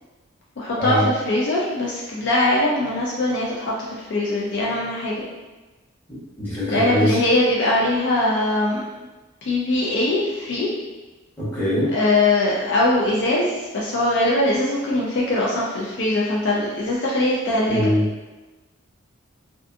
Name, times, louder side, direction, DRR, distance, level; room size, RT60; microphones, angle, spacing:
voice 1, 0.6-5.3 6.7-8.8 9.4-10.7 11.9-17.9, left 1 dB, 55° left, -5 dB, 0.4 m, -21 dB
voice 2, 6.4-7.2 11.4-11.9 17.7-18.1, equal, 10° left, -11 dB, 0.9 m, -22 dB
2.4 x 2.4 x 2.4 m, 1.2 s
head